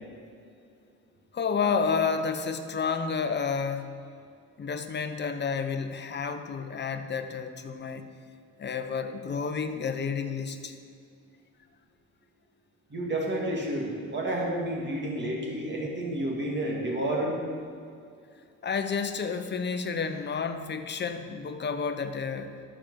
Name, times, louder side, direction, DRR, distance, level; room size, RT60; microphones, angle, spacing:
voice 1, 1.3-3.9 4.6-8.1 8.6-10.8 18.6-22.5, left 5 dB, 35° left, 8 dB, 0.9 m, -30 dB
voice 2, 12.9-17.4, right 1 dB, 35° right, -2 dB, 2.2 m, -30 dB
12.5 x 5.1 x 6.3 m, 2.3 s
cardioid pair, 90°, 30 cm